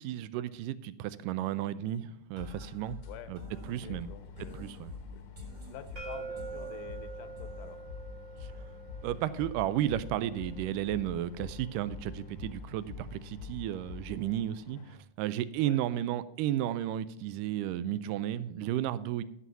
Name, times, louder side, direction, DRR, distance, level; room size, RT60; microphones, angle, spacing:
voice 1, 0.0-3.0 3.3-3.4 3.7-4.1 4.5-4.9 8.4-8.5 9.0-19.2, right 12 dB, 85° right, 15 dB, 2.1 m, -33 dB
sound 1, 1.8-1.9 2.5-2.6 2.8-15.0, equal, 60° left, 1.5 m, -55 dB
sound 2, 2.4-14.4, left 5 dB, 55° right, 0.5 m, -45 dB
voice 2, 3.7-4.7 5.1-5.2 5.7-7.8 14.7-14.9 15.6-15.8, left 9 dB, 80° left, 12 dB, 2.4 m, -48 dB
sound 3, 6.0-11.8, right 5 dB, 35° right, 1.5 m, -46 dB
11.0 x 6.2 x 5.4 m, 0.82 s
omnidirectional pair, 3.8 m